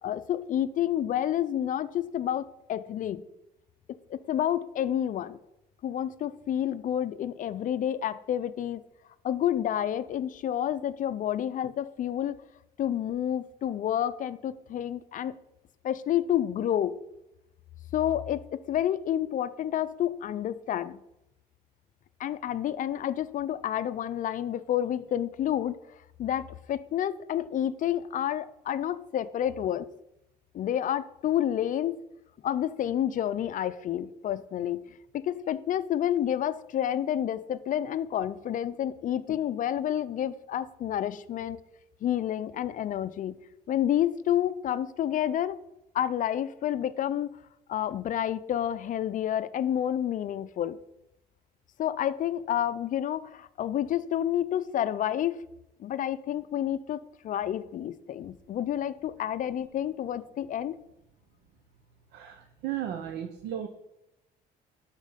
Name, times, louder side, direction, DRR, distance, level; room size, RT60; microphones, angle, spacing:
voice 1, 0.0-3.2 3.9-5.4 5.8-8.8 9.2-12.4 12.8-15.4 15.8-17.0 17.9-21.0 22.2-29.9 30.5-32.0 32.4-34.8 35.1-41.6 42.0-43.4 43.7-45.6 45.9-47.4 47.7-50.8 51.8-55.4 55.8-60.8, left 10 dB, 50° left, 14 dB, 0.6 m, -29 dB
voice 2, 62.1-63.7, right 10 dB, 85° right, 6 dB, 0.9 m, -35 dB
11.5 x 4.5 x 5.7 m, 0.89 s
cardioid pair, 110°, 17 cm